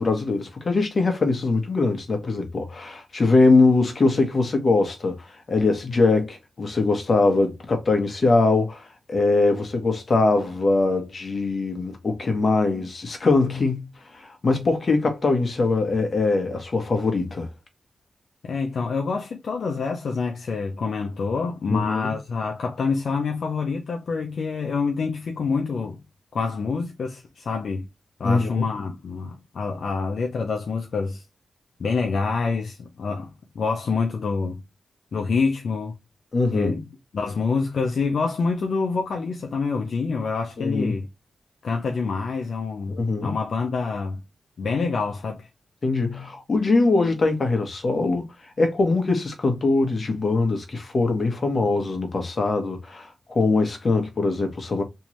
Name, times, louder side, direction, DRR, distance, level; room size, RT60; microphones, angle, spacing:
voice 1, 0.0-13.9 14.1-17.5 21.7-22.2 28.2-28.7 36.3-36.8 40.6-41.0 42.9-43.4 45.8-48.3 48.6-54.8, left 3 dB, 55° left, 1.4 m, -22 dB
voice 2, 18.4-26.0 26.3-27.9 28.2-31.2 31.8-34.6 35.1-36.0 36.5-36.8 37.1-41.1 41.6-44.2 44.6-45.5, left 4 dB, 80° left, 0.6 m, -26 dB
3.4 x 3.1 x 2.9 m
cardioid pair, 60°, 0 cm